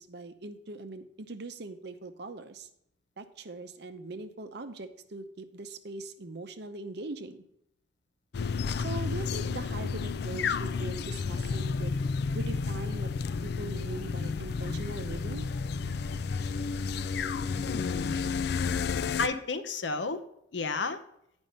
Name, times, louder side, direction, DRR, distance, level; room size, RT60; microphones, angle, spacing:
voice 1, 0.0-2.7 3.2-7.4 8.8-12.0 12.3-13.1 13.4-15.5, right 3 dB, 60° right, 9 dB, 0.7 m, -41 dB
sound 1, 8.3-19.3, left 5 dB, 60° left, 0.4 m, -31 dB
voice 2, 17.6-18.2 19.2-20.2 20.5-21.0, left 4 dB, 80° left, 9 dB, 0.7 m, -32 dB
8.9 x 5.3 x 5.4 m, 0.75 s
head